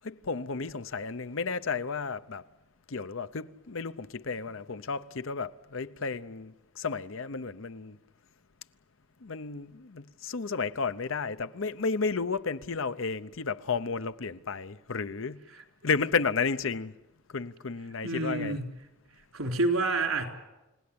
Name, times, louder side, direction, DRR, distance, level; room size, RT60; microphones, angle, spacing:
voice 1, 0.0-2.4 2.9-8.0 9.2-15.4 15.8-16.9 17.3-18.5, left 4 dB, 65° left, 0.8 m, -32 dB
voice 2, 18.0-18.7 19.3-20.3, right 2 dB, 85° right, 3.9 m, -28 dB
30.0 x 18.0 x 8.7 m
head